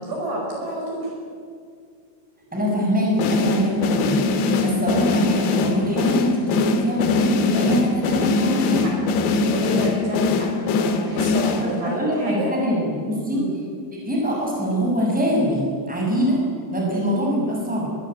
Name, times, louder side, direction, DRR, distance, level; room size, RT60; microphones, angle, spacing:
voice 1, 0.0-1.1 8.5-8.9 9.5-10.5 10.8-12.5 13.3-13.5, right 1 dB, 55° right, -1 dB, 7.4 m, -29 dB
voice 2, 2.5-8.9 11.6-13.4 14.0-16.4 16.7-17.9, equal, ahead, -2 dB, 6.5 m, -23 dB
sound 1, 3.2-12.0, left 3 dB, 65° left, 3.4 m, -22 dB
22.0 x 21.0 x 9.2 m, 2.1 s
omnidirectional pair, 5.8 m